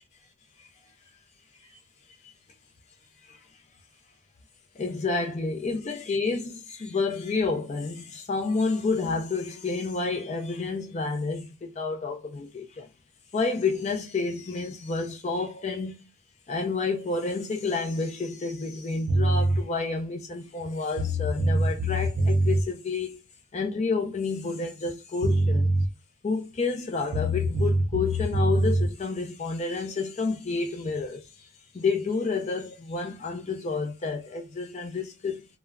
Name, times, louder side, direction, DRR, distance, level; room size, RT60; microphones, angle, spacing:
voice 1, 4.8-12.9 13.3-16.1 16.5-23.2 23.5-25.7 26.2-31.5 31.7-35.5, left 4 dB, 30° left, 0.3 m, -30 dB
sound 1, 19.1-19.6 20.6-20.7 21.0-22.6 24.9-25.0 25.2-25.9 27.1-28.9, right 1 dB, 50° right, 0.5 m, -23 dB
3.4 x 2.0 x 2.2 m
head